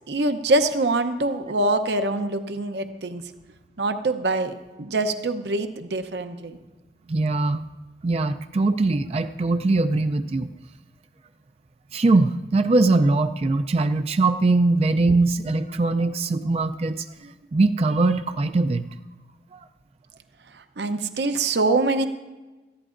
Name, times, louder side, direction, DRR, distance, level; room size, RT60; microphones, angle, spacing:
voice 1, 0.1-3.2 3.8-6.6 20.5-22.1, right 2 dB, 70° right, 8 dB, 0.7 m, -24 dB
voice 2, 7.1-7.6 8.0-10.5 11.9-17.1 17.5-18.8 19.5-19.6, right 3 dB, 35° right, 8 dB, 0.4 m, -21 dB
20.0 x 14.5 x 2.5 m, 1.2 s
head